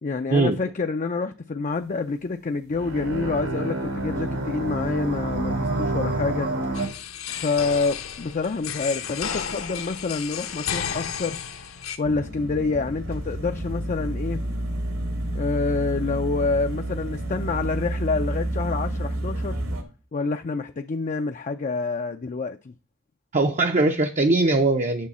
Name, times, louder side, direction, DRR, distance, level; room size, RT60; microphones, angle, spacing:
voice 1, 0.0-6.5 7.3-11.4 12.0-14.4 15.3-19.6 20.1-22.7, left 4 dB, 35° left, 0.4 m, -27 dB
sound 1, 2.7-6.9, right 2 dB, 90° right, 3.0 m, -28 dB
sound 2, 6.7-12.0, left 7 dB, 70° left, 1.0 m, -32 dB
sound 3, 12.0-19.8, right 1 dB, 75° right, 1.9 m, -30 dB
voice 2, 23.3-25.1, right 2 dB, 35° right, 0.6 m, -20 dB
9.6 x 6.3 x 4.2 m
head